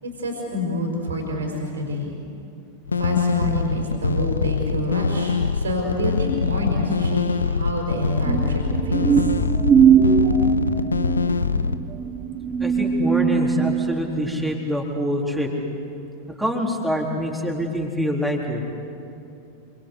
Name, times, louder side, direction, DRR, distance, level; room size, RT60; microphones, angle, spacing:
voice 1, 0.0-2.2 3.0-9.3, left 1 dB, 70° right, 1 dB, 5.2 m, -27 dB
sound 1, 2.8-11.7, left 4 dB, 75° left, 0.7 m, -24 dB
sound 2, 8.3-14.0, right 6 dB, 20° right, 1.7 m, -20 dB
voice 2, 12.6-15.5 16.4-18.6, equal, 5° right, -1 dB, 4.2 m, -25 dB
28.0 x 25.5 x 8.3 m, 2.7 s
figure-of-eight pair, 90°, 0 cm